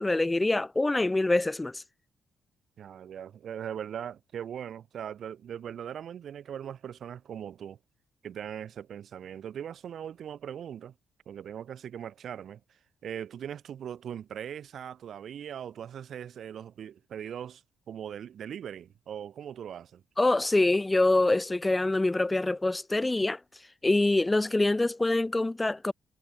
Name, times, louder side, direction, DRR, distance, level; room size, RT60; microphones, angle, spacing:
voice 1, 0.0-1.8 20.2-23.4 23.8-25.9, left 2 dB, 10° left, 0.7 m, -25 dB
voice 2, 2.8-7.8 8.2-10.9 11.3-12.6 13.0-17.6 17.9-20.0, right 9 dB, 55° right, 1.5 m, -40 dB
cardioid pair, 145°, 0 cm